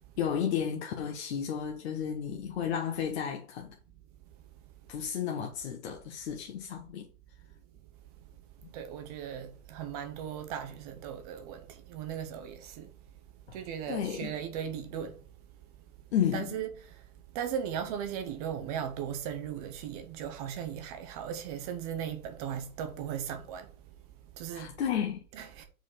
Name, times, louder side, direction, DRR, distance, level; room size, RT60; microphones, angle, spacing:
voice 1, 0.2-3.7 4.9-7.1 13.5-13.6 13.9-14.3 16.1-16.6 24.5-25.2, left 8 dB, 45° left, 1.0 m, -32 dB
voice 2, 8.7-12.9 13.5-15.2 16.3-17.1 17.3-23.7 24.3-24.8 25.3-25.6, right 8 dB, 25° right, 0.8 m, -37 dB
5.0 x 4.3 x 4.9 m
hypercardioid pair, 145°, 47 cm